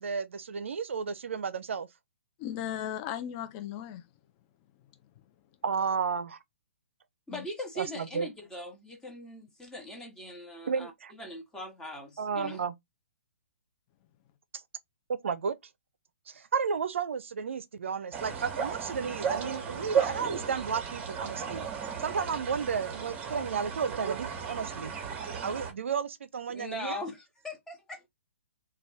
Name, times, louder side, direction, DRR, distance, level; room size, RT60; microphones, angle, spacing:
voice 1, 0.0-1.9 5.6-6.4 7.8-8.3 10.7-11.1 12.2-12.7 15.2-15.6 16.3-21.7 22.0-25.0 25.4-27.0, right 6 dB, 70° right, 0.4 m, -32 dB
voice 2, 2.4-4.0 7.3-7.5, left 10 dB, 30° left, 0.3 m, -36 dB
voice 3, 7.3-12.6 26.5-28.1, left 1 dB, 10° left, 0.7 m, -41 dB
sound 1, 18.1-25.7, right 7 dB, 20° right, 0.7 m, -34 dB
2.4 x 2.3 x 3.3 m
figure-of-eight pair, 130°, 7 cm